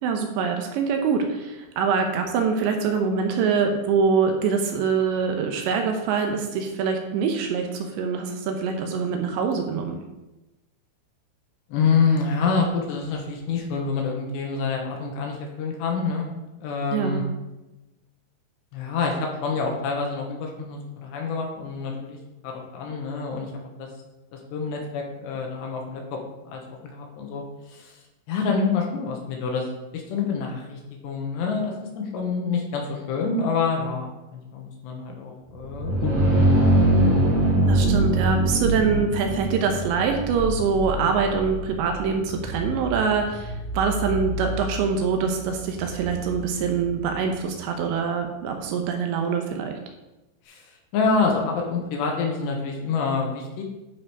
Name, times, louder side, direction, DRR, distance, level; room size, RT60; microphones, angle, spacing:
voice 1, 0.0-10.0 16.9-17.2 37.7-49.8, right 5 dB, 80° right, 4 dB, 2.9 m, -24 dB
voice 2, 11.7-16.3 16.6-17.2 18.7-22.2 22.4-23.5 23.8-23.9 24.3-26.2 26.5-26.6 26.9-28.0 28.3-36.5 50.5-50.7 50.9-53.6, left 4 dB, 70° left, 1 dB, 3.0 m, -27 dB
sound 1, 35.6-47.2, right 1 dB, 55° right, 2.9 m, -24 dB
11.0 x 4.9 x 4.8 m, 1.0 s
omnidirectional pair, 5.5 m